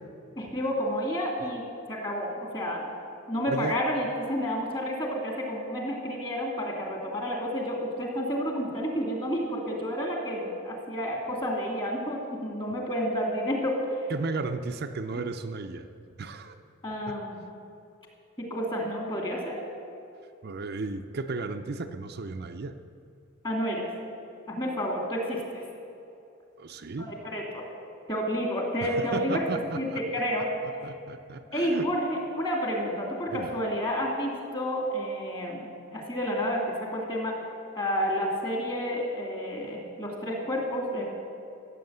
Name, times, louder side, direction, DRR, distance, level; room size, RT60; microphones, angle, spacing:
voice 1, 0.4-1.6 1.9-2.9 3.3-13.8 16.8-17.4 18.4-19.6 23.4-23.9 24.5-25.6 27.0-27.7 28.1-29.5 29.7-30.5 30.8-30.9 31.5-37.4 37.7-41.0, equal, 25° left, 0 dB, 2.6 m, -30 dB
voice 2, 14.1-15.9 16.2-16.6 16.9-17.1 20.4-22.7 26.6-27.1 28.8-30.0 30.8-31.9 33.3-33.6, right 3 dB, 50° right, 6 dB, 0.6 m, -34 dB
15.0 x 8.3 x 8.0 m, 2.7 s
head